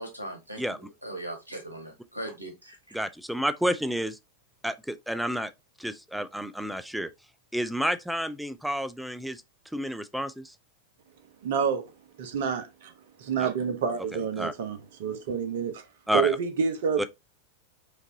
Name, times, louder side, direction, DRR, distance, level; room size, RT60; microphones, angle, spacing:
voice 1, 0.0-3.0, right 1 dB, 85° right, 1.4 m, -39 dB
voice 2, 2.9-4.2 4.6-5.5 5.8-7.1 7.5-9.4 9.7-10.5 13.4-13.5 14.1-14.5 16.1-16.4 17.0-17.1, equal, ahead, 0.4 m, -30 dB
voice 3, 11.4-11.9 12.2-12.9 13.2-15.8 16.1-17.0, right 6 dB, 60° right, 0.8 m, -28 dB
5.0 x 2.6 x 2.7 m
figure-of-eight pair, 90°, 0 cm